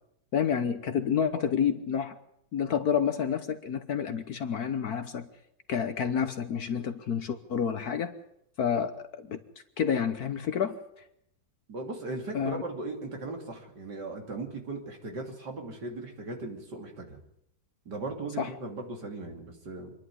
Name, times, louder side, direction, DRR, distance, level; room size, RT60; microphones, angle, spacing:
voice 1, 0.3-2.2 2.5-5.3 5.7-8.1 8.6-9.4 9.8-10.8 12.3-12.6 18.4-18.5, left 7 dB, 60° left, 10 dB, 1.4 m, -29 dB
voice 2, 11.7-17.2 17.9-19.9, right 3 dB, 65° right, 3 dB, 3.6 m, -38 dB
26.0 x 11.0 x 9.6 m, 0.79 s
omnidirectional pair, 2.0 m